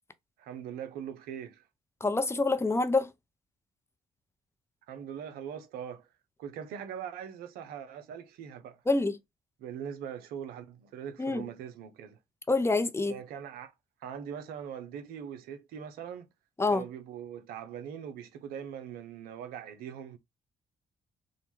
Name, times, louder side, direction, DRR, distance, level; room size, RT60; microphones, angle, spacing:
voice 1, 0.4-1.6 4.9-6.1 6.4-8.8 9.6-12.2 13.1-13.7 14.0-16.3 16.7-20.2, right 8 dB, 75° right, 0.5 m, -41 dB
voice 2, 2.0-3.1 8.9-9.1 11.2-11.4 12.5-13.1 16.6-16.8, left 3 dB, 15° left, 0.5 m, -26 dB
2.4 x 2.1 x 3.0 m
hypercardioid pair, 45°, 16 cm